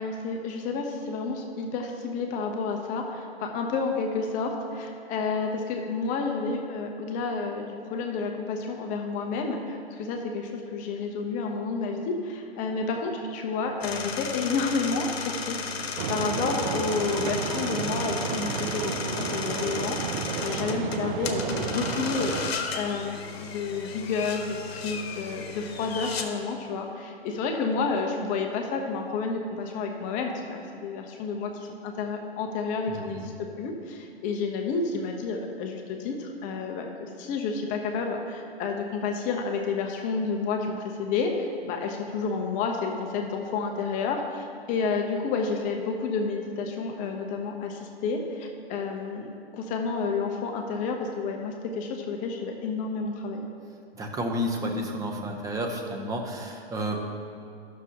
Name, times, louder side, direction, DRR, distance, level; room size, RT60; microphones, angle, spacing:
voice 1, 0.0-53.5, left 4 dB, 25° left, 2 dB, 0.6 m, -30 dB
sound 1, 13.8-26.2, left 5 dB, 80° left, 0.9 m, -34 dB
sound 2, 16.0-22.5, right 8 dB, 55° right, 0.5 m, -32 dB
voice 2, 32.9-33.2 54.0-57.0, equal, 10° right, 2 dB, 0.7 m, -31 dB
12.0 x 6.4 x 2.8 m, 2.6 s
hypercardioid pair, 130°, 31 cm